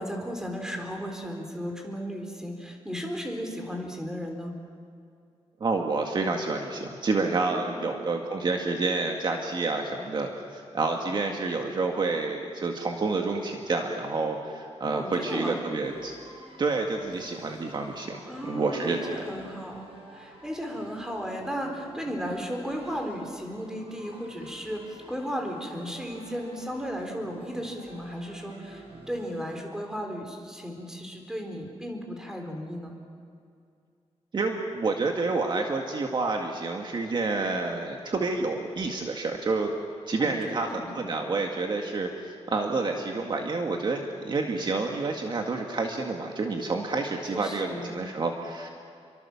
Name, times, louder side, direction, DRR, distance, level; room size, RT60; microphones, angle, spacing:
voice 1, 0.0-4.5 7.5-7.9 14.9-15.6 18.3-32.9 40.2-40.9 47.3-48.0, equal, 5° right, 3 dB, 4.0 m, -35 dB
voice 2, 5.6-16.1 16.6-19.3 34.3-39.7 40.1-48.7, right 3 dB, 45° right, 2 dB, 2.0 m, -29 dB
sound 1, 15.8-29.6, right 2 dB, 60° right, 6.3 m, -50 dB
29.0 x 24.0 x 7.3 m, 2.4 s
wide cardioid pair, 140°, 11 cm